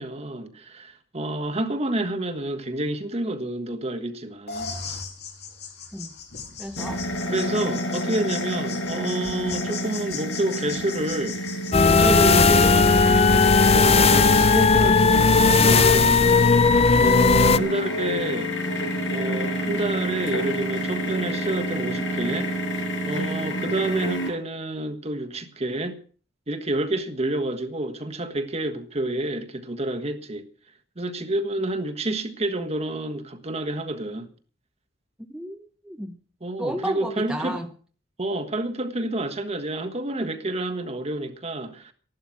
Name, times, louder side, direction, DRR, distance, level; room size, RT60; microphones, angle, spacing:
voice 1, 0.0-4.7 7.3-11.5 11.8-16.6 16.9-18.5 19.1-22.5 23.1-26.0 26.5-30.4 31.0-34.3 36.4-37.6 38.2-41.9, right 1 dB, 35° right, 1.5 m, -29 dB
sound 1, 4.5-11.8, left 5 dB, 60° left, 3.0 m, -38 dB
voice 2, 6.6-7.0 35.3-36.2 36.6-37.7, right 1 dB, 5° right, 0.9 m, -33 dB
sound 2, 6.8-24.3, equal, 80° left, 5.8 m, -29 dB
sound 3, 11.7-17.6, left 4 dB, 35° left, 0.6 m, -16 dB
14.0 x 11.5 x 6.0 m
head